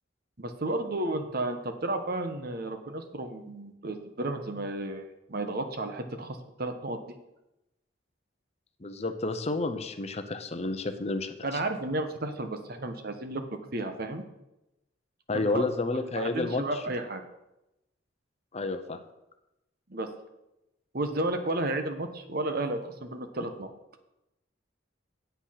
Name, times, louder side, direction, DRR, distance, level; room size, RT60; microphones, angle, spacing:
voice 1, 0.4-7.1 11.4-13.4 13.7-14.2 15.3-15.6 16.1-17.2 19.9-20.1 20.9-23.7, right 2 dB, 50° right, 7 dB, 1.2 m, -32 dB
voice 2, 8.8-11.6 15.3-16.8 18.5-19.0, left 2 dB, 35° left, 8 dB, 0.8 m, -30 dB
8.9 x 8.2 x 5.8 m, 0.91 s
head